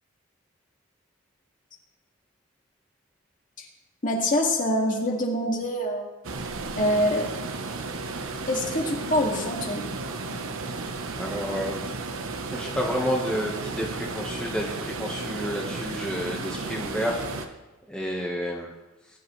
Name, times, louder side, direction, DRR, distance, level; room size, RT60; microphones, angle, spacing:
voice 1, 4.0-6.1 6.8-7.3 8.5-9.9, left 1 dB, 40° left, 0 dB, 2.2 m, -25 dB
sound 1, 6.2-17.5, right 3 dB, 65° right, 1.1 m, -34 dB
voice 2, 11.2-11.8 12.5-17.5 17.9-18.7, equal, 5° left, -2 dB, 1.4 m, -30 dB
19.0 x 10.5 x 3.3 m, 1.1 s
head